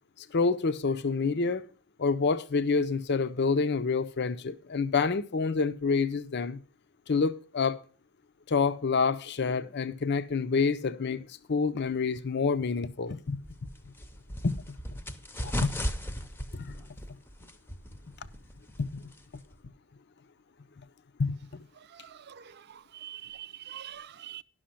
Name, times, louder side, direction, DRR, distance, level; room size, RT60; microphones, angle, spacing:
voice 1, 0.3-1.7 2.0-6.6 7.1-7.8 8.5-13.4 14.4-14.5 15.4-15.7 16.5-16.7 18.8-19.0 21.2-21.4, left 4 dB, 50° left, 0.6 m, -28 dB
sound 1, 13.4-19.6, equal, 10° left, 0.7 m, -37 dB
voice 2, 21.9-24.4, right 11 dB, 50° right, 0.5 m, -45 dB
11.0 x 6.4 x 5.7 m
head